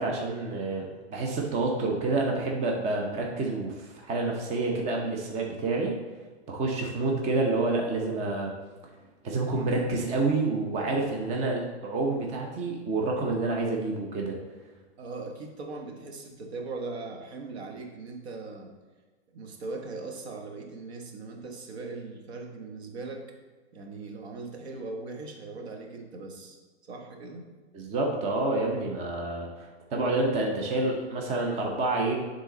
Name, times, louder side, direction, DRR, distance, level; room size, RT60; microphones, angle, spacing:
voice 1, 0.0-5.9 6.5-8.5 9.2-14.4 27.7-32.1, right 2 dB, 20° right, 0 dB, 0.8 m, -28 dB
voice 2, 15.0-18.7 19.3-23.2 23.7-26.6 26.9-27.5, right 3 dB, 70° right, 2 dB, 1.4 m, -39 dB
9.8 x 3.8 x 3.9 m, 1.3 s
hypercardioid pair, 150°, 33 cm